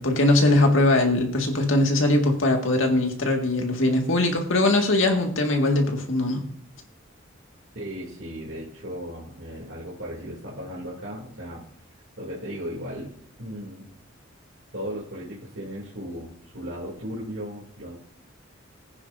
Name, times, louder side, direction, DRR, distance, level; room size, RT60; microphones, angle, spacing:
voice 1, 0.0-6.4, left 2 dB, 70° left, 2 dB, 2.1 m, -21 dB
voice 2, 7.7-11.6 12.2-13.1 13.4-13.9 14.7-17.9, equal, 70° right, -6 dB, 3.0 m, -36 dB
19.0 x 9.8 x 2.7 m, 0.62 s
head